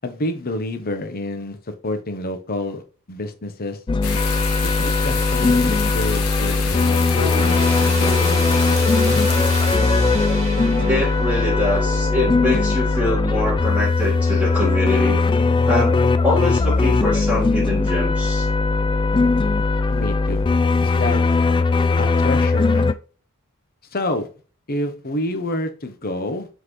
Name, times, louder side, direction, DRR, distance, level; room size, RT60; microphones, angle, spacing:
voice 1, 0.0-2.8 3.1-3.8 4.8-8.4 19.9-20.4 20.8-21.2 22.0-22.9 23.9-24.3 24.7-26.5, left 1 dB, 45° left, 1.0 m, -28 dB
sound 1, 3.9-22.9, left 3 dB, 20° left, 0.3 m, -19 dB
sound 2, 4.0-9.8, left 6 dB, 75° left, 1.3 m, -29 dB
sound 3, 7.1-14.8 15.2-15.4 16.3-16.4, equal, 30° right, 2.1 m, -30 dB
voice 2, 10.9-15.2 15.7-18.5, left 1 dB, 5° right, 2.1 m, -24 dB
7.4 x 4.0 x 3.2 m
head